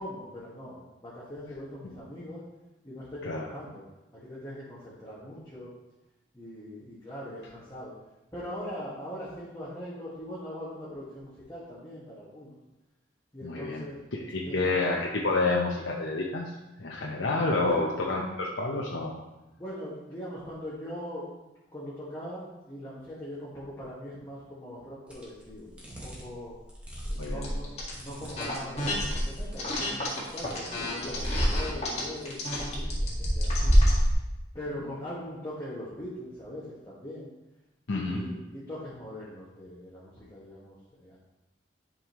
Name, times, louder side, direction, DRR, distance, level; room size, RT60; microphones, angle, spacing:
voice 1, 0.0-2.4 2.8-3.8 4.1-5.7 6.3-7.9 8.3-12.6 13.3-14.0 14.4-14.7 17.6-17.9 19.6-21.3 21.7-26.5 27.0-27.7 28.0-33.8 34.5-37.3 37.9-41.2, equal, 20° left, -10 dB, 1.8 m, -41 dB
voice 2, 13.4-13.8 14.3-16.5 16.8-19.2 27.2-27.5 34.8-35.0 37.9-38.2, left 3 dB, 85° left, -2 dB, 0.9 m, -29 dB
sound 1, 25.1-25.2 25.8-26.2 26.7-29.5 30.1-30.8 31.1-31.6 32.2-34.1, equal, 5° right, 1.5 m, -27 dB
sound 2, 27.4-27.9 28.3-29.2 29.6-34.0, left 2 dB, 35° left, 1.8 m, -33 dB
11.0 x 5.3 x 3.1 m, 0.99 s
head